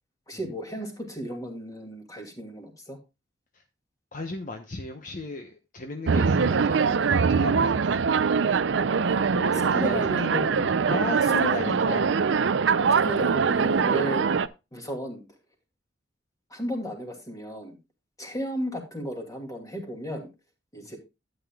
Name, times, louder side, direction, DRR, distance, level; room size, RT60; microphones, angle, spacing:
voice 1, 0.3-3.0 9.0-9.3 9.7-10.7 13.0-14.3 14.7-15.2 16.5-17.8 18.2-20.3 20.7-21.0, equal, 20° left, 2 dB, 2.5 m, -34 dB
voice 2, 4.1-8.1 9.3-10.3 10.9-12.2 20.8-20.9, left 2 dB, 45° left, 4 dB, 0.9 m, -35 dB
sound 1, 6.1-14.5, right 5 dB, 75° right, 0.5 m, -23 dB
12.5 x 9.1 x 2.3 m, 0.26 s
head